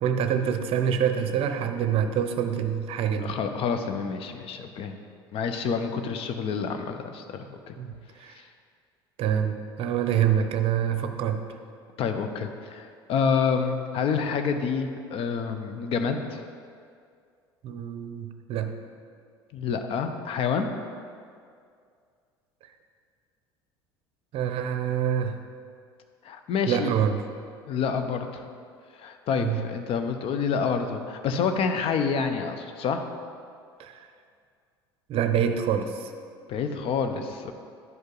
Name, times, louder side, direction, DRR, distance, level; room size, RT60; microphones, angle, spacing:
voice 1, 0.0-3.3 7.8-7.9 8.2-8.4 9.2-11.4 17.6-18.7 24.3-25.4 26.7-27.2 29.4-29.6 33.8-34.1 35.1-36.1, right 8 dB, 45° right, 7 dB, 0.6 m, -26 dB
voice 2, 3.2-4.9 5.3-7.7 8.3-8.5 12.0-16.4 19.5-20.7 26.2-26.9 27.7-28.4 28.9-33.0 36.5-37.5, left 6 dB, 45° left, 7 dB, 0.7 m, -28 dB
11.0 x 5.2 x 3.9 m, 2.2 s
figure-of-eight pair, 70°, 13 cm